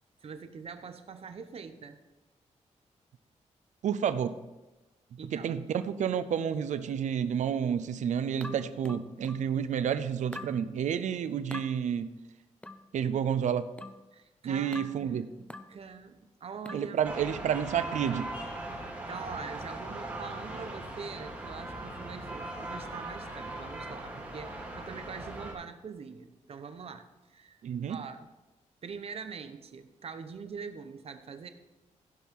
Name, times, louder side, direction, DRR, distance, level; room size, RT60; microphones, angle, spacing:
voice 1, 0.2-2.0 5.2-5.5 14.1-17.0 19.1-27.6 27.9-28.3 28.8-31.5, right 5 dB, 55° right, 9 dB, 0.9 m, -43 dB
voice 2, 3.8-4.4 5.3-12.1 12.9-13.7 14.4-15.3 16.7-18.3 27.6-28.0, right 8 dB, 75° right, 12 dB, 0.6 m, -30 dB
sound 1, 8.4-9.5 10.3-10.6 11.5-11.7 12.6-12.9 13.8-14.1 14.7-15.0 15.5-15.8 16.6-16.9, left 1 dB, 10° left, 0.6 m, -43 dB
sound 2, 17.0-25.5, right 1 dB, 15° right, 2.9 m, -39 dB
16.0 x 5.5 x 4.7 m, 1.1 s
cardioid pair, 110°, 12 cm